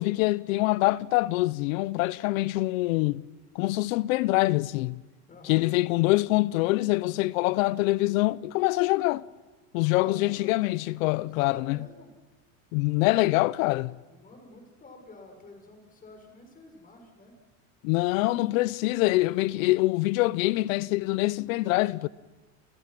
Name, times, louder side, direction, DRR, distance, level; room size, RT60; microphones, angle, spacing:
voice 1, 0.0-3.2 3.5-5.0 5.5-9.2 9.7-11.8 12.7-13.9 17.8-22.1, left 20 dB, 70° left, 0.9 m, -25 dB
voice 2, 5.3-5.7 9.9-10.6 11.4-12.1 14.1-17.3, left 2 dB, 20° left, 7.1 m, -49 dB
30.0 x 29.5 x 6.1 m
supercardioid pair, 140°, 42 cm